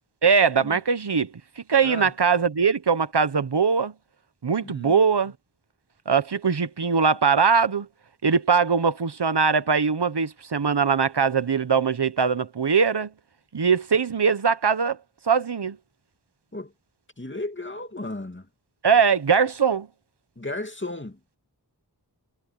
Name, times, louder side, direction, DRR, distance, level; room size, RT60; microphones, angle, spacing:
voice 1, 0.2-1.3 1.7-3.9 4.4-5.3 6.1-7.9 8.2-13.1 13.5-15.0 15.3-15.8 18.8-19.9, right 6 dB, 80° right, 1.1 m, -21 dB
voice 2, 4.6-4.9 16.5-16.7 17.2-18.5 20.4-21.2, left 2 dB, 30° left, 2.6 m, -34 dB
wide cardioid pair, 45°, 40 cm